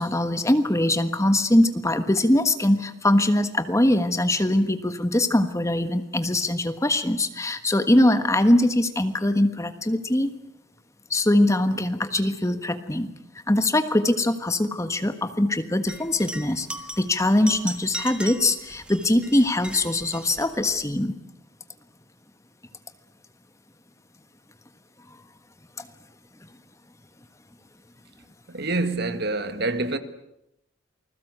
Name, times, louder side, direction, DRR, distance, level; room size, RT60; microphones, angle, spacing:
voice 1, 0.0-10.3 11.1-13.1 13.5-16.7 17.0-21.1 25.1-25.2, left 1 dB, 15° left, 1.4 m, -22 dB
sound 1, 15.9-20.8, right 1 dB, 5° right, 1.6 m, -38 dB
voice 2, 28.5-30.0, right 2 dB, 55° right, 1.8 m, -26 dB
28.5 x 21.0 x 8.0 m
head